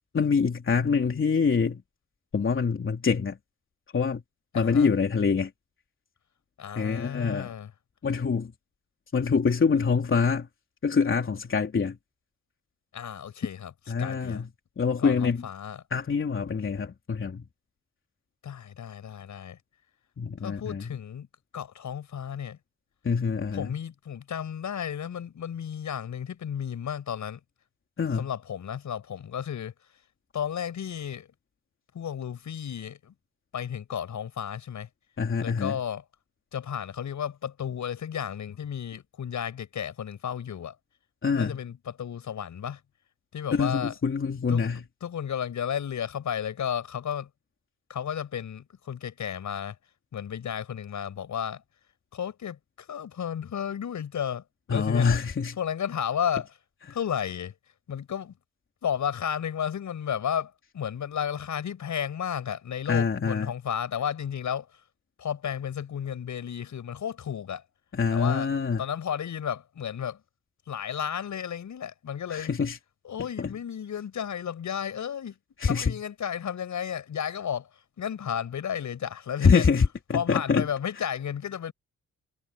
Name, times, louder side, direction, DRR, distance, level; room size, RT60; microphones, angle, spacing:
voice 1, 0.1-1.8 2.3-3.4 3.9-4.2 4.5-5.5 6.8-7.5 8.0-8.5 9.1-10.5 10.8-12.0 13.9-14.5 14.8-15.4 15.9-17.4 20.2-20.8 23.0-23.7 28.0-28.3 35.2-35.8 41.2-41.6 43.5-44.8 54.7-55.6 62.9-63.5 67.9-68.8 72.3-72.8 73.4-73.5 75.6-76.0 79.4-80.7, left 5 dB, 40° left, 3.5 m, -25 dB
voice 2, 4.5-4.9 6.6-7.7 12.9-13.7 14.0-14.4 15.0-15.8 18.4-19.6 20.4-21.3 21.5-22.6 23.5-27.4 28.1-29.7 30.3-31.3 31.9-33.1 33.5-34.9 35.4-36.0 36.5-40.8 41.3-42.8 43.3-43.9 44.5-47.3 47.9-49.8 50.1-51.6 52.1-55.1 55.6-56.5 56.9-57.5 57.9-58.3 58.8-64.7 65.2-67.6 68.1-68.5 68.8-70.2 70.7-72.5 73.0-75.3 75.6-77.7 78.0-79.7 80.1-81.7, left 8 dB, 75° left, 7.1 m, -33 dB
cardioid pair, 110°, 30 cm